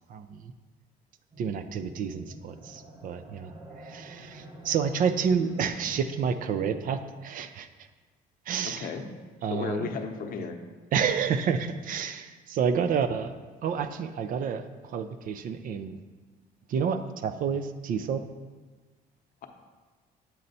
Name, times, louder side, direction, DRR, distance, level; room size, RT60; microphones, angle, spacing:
voice 1, 0.1-0.5 1.4-7.7 8.5-8.9 9.4-10.0 10.9-13.3 13.6-16.0 16.7-18.3, right 6 dB, 55° right, 10 dB, 0.4 m, -29 dB
sound 1, 1.3-6.9, right 1 dB, 25° right, 0.9 m, -47 dB
voice 2, 9.5-10.6, left 6 dB, 55° left, 5 dB, 0.7 m, -33 dB
7.8 x 4.2 x 4.1 m, 1.3 s
cardioid pair, 110°, 17 cm